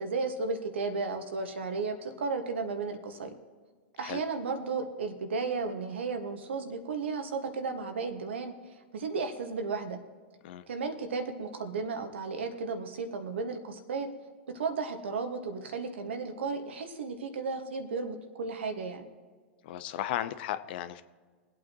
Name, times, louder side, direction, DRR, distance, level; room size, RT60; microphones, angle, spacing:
voice 1, 0.0-3.3 4.0-8.5 8.9-10.0 10.7-14.1 14.5-19.1, right 4 dB, 75° right, 6 dB, 1.7 m, -34 dB
voice 2, 19.6-21.0, left 12 dB, 60° left, 12 dB, 0.8 m, -35 dB
24.0 x 8.6 x 3.0 m, 1.6 s
hypercardioid pair, 105°, 6 cm